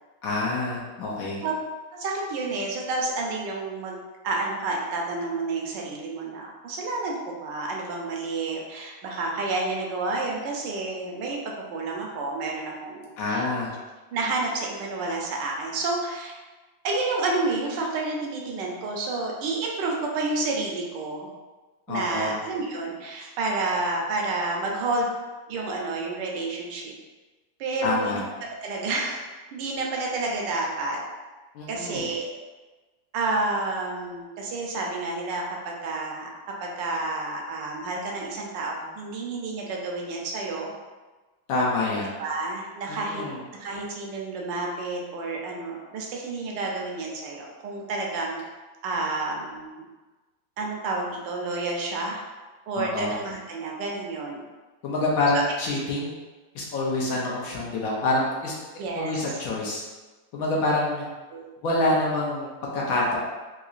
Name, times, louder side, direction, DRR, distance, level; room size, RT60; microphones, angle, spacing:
voice 1, 0.2-1.4 13.2-13.7 21.9-22.4 27.8-28.2 31.5-32.1 41.5-42.1 42.9-43.4 52.7-53.1 54.8-56.1 56.5-58.5 58.9-59.8 60.3-61.0 61.6-62.5 62.7-63.2, left 2 dB, 70° left, -4 dB, 0.8 m, -26 dB
voice 2, 1.9-4.0 4.2-11.4 11.7-13.4 14.1-16.3 16.8-21.3 21.9-25.1 25.5-26.9 27.6-28.2 28.6-29.2 29.5-31.0 31.7-32.3 33.1-36.3 36.6-40.7 42.2-43.2 43.6-48.4 48.8-49.9 50.6-52.2 52.7-54.4 55.3-55.4 58.8-59.4 61.3-61.5, right 3 dB, 75° right, -1 dB, 1.2 m, -30 dB
3.7 x 2.9 x 2.4 m, 1.2 s
omnidirectional pair, 2.1 m